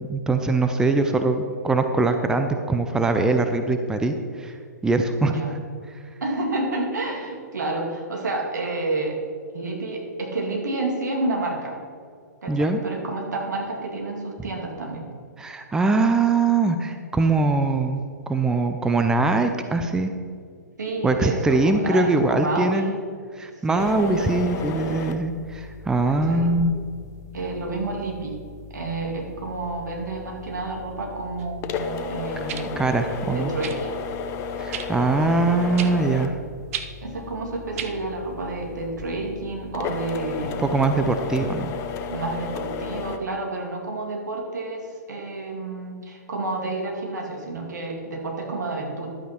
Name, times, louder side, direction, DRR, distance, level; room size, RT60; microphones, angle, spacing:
voice 1, 0.1-4.6 4.8-5.4 12.5-12.8 15.4-18.0 18.3-20.1 21.0-22.9 23.4-26.8 32.8-33.5 34.6-36.4 40.4-41.7, right 3 dB, 5° right, 7 dB, 0.5 m, -22 dB
voice 2, 5.2-5.5 6.2-9.2 9.5-11.8 12.4-15.1 20.8-23.0 23.7-25.0 26.1-26.5 27.3-28.4 28.7-32.8 33.3-34.0 37.0-40.7 42.1-49.1, right 2 dB, 80° right, 1 dB, 2.4 m, -30 dB
sound 1, 23.8-43.2, left 6 dB, 30° left, 0.8 m, -34 dB
sound 2, 31.4-31.5 32.5-32.7 33.6-33.8 34.7-34.9 35.8-35.9 36.7-36.9 37.8-37.9 38.9-39.0, right 9 dB, 50° right, 0.8 m, -32 dB
11.5 x 8.2 x 4.5 m, 2.1 s
hypercardioid pair, 125°, 10 cm